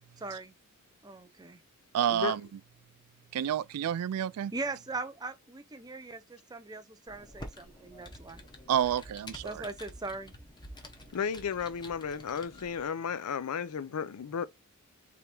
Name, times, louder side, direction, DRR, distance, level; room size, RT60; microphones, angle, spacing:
voice 1, 0.2-0.5 1.0-1.6 4.5-8.4 9.4-10.3, right 3 dB, 15° right, 0.5 m, -40 dB
voice 2, 1.9-2.4 3.3-4.5 8.7-9.7, right 10 dB, 80° right, 0.3 m, -29 dB
Computer keyboard, 7.1-12.9, left 1 dB, 20° left, 0.8 m, -49 dB
voice 3, 11.1-14.5, left 6 dB, 85° left, 0.5 m, -34 dB
3.5 x 3.3 x 4.3 m
head